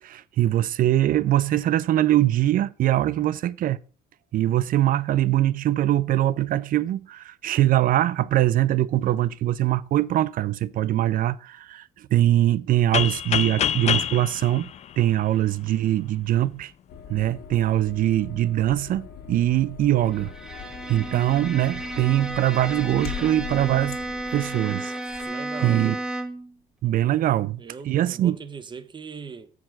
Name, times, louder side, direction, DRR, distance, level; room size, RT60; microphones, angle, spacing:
voice 1, 0.0-3.8 4.3-14.7 15.0-16.7 17.1-20.3 20.9-24.0 24.3-25.3 25.6-25.9 26.8-28.4, right 13 dB, 55° right, 0.5 m, -22 dB
sound 1, 12.9-15.7, left 9 dB, 40° left, 0.4 m, -26 dB
sound 2, 16.9-25.3, left 9 dB, 65° left, 1.4 m, -41 dB
Bowed string instrument, 20.1-26.5, right 1 dB, 5° right, 1.1 m, -33 dB
voice 2, 25.2-26.0 27.6-29.5, right 5 dB, 30° right, 0.9 m, -39 dB
7.6 x 4.8 x 5.8 m
cardioid pair, 110°, 17 cm